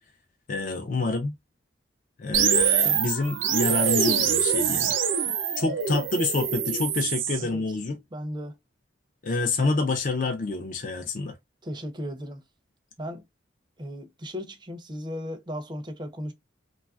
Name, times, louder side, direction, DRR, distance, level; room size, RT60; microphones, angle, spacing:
voice 1, 0.5-1.3 2.2-5.3 5.6-8.0 9.2-11.4, left 3 dB, 45° left, 0.4 m, -27 dB
sound 1, 2.3-7.4, right 7 dB, 85° right, 0.7 m, -24 dB
voice 2, 8.1-8.6 11.6-12.4 13.0-13.2 13.8-16.3, equal, 25° right, 0.5 m, -36 dB
3.1 x 2.3 x 2.3 m
head